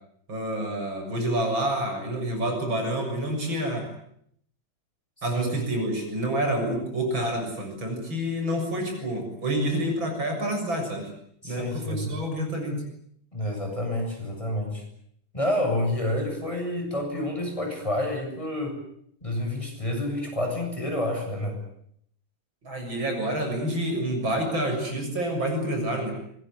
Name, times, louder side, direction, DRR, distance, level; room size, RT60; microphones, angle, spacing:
voice 1, 0.3-3.9 5.2-11.1 11.4-12.8 22.6-26.1, right 1 dB, 65° right, 4 dB, 7.6 m, -28 dB
voice 2, 11.4-12.1 13.3-14.8 15.3-18.8 19.2-21.6, left 1 dB, 15° left, 2 dB, 7.7 m, -29 dB
25.0 x 21.0 x 9.5 m, 0.71 s
omnidirectional pair, 2.3 m